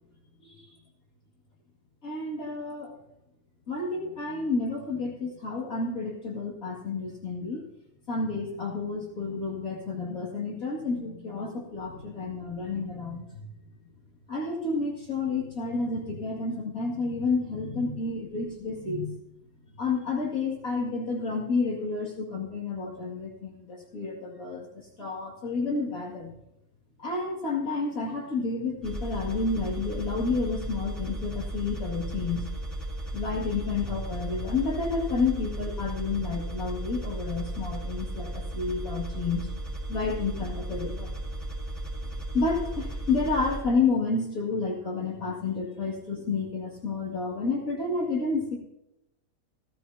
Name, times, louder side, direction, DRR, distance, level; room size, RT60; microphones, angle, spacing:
voice 1, 2.0-2.9 3.7-7.6 8.1-13.4 14.3-19.1 19.8-24.7 25.0-26.3 27.0-32.5 33.1-39.5 39.9-41.1 42.3-48.6, left 4 dB, 65° left, -4 dB, 2.9 m, -30 dB
sound 1, 28.8-43.6, right 1 dB, ahead, 3.1 m, -35 dB
16.5 x 14.5 x 2.8 m, 0.86 s
omnidirectional pair, 1.6 m